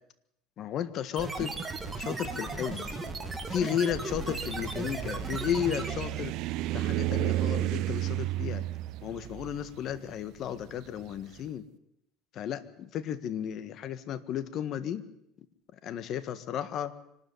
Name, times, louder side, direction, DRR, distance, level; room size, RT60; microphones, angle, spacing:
voice 1, 0.6-1.6 2.0-2.9 3.5-6.3 6.7-8.6 9.0-11.6 12.3-15.0 15.8-16.9, left 9 dB, 45° left, 12 dB, 1.7 m, -33 dB
sound 1, 1.2-6.3, right 3 dB, 15° right, 2.5 m, -36 dB
sound 2, 4.0-11.2, right 15 dB, 60° right, 0.7 m, -32 dB
25.0 x 13.0 x 9.5 m, 0.78 s
cardioid pair, 130°, 0 cm